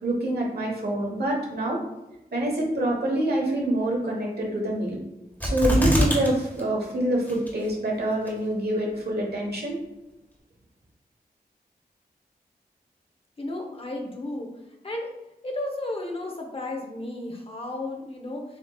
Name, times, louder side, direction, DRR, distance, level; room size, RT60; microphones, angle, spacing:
voice 1, 0.0-1.8 2.3-5.0 5.4-9.8, right 1 dB, 80° right, -2 dB, 1.3 m, -26 dB
sound 1, 5.4-6.3 6.6-6.7 7.3-7.7 8.3-8.4, equal, 10° left, 1.5 m, -23 dB
voice 2, 13.4-14.5 14.8-15.1 15.4-18.4, left 2 dB, 35° left, 1 dB, 1.0 m, -33 dB
7.2 x 3.0 x 2.4 m, 0.95 s
wide cardioid pair, 80°, 16 cm